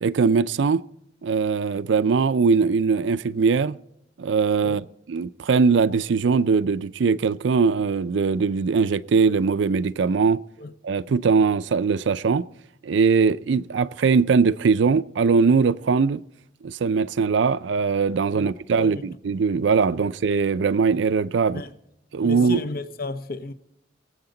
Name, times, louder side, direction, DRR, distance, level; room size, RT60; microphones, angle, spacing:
voice 1, 0.0-0.8 1.2-3.8 4.2-10.4 10.8-12.4 12.8-16.2 16.6-21.6 22.1-22.6, right 5 dB, 70° right, 0.4 m, -21 dB
voice 2, 22.2-23.5, left 3 dB, 50° left, 0.8 m, -33 dB
24.0 x 8.0 x 3.9 m
head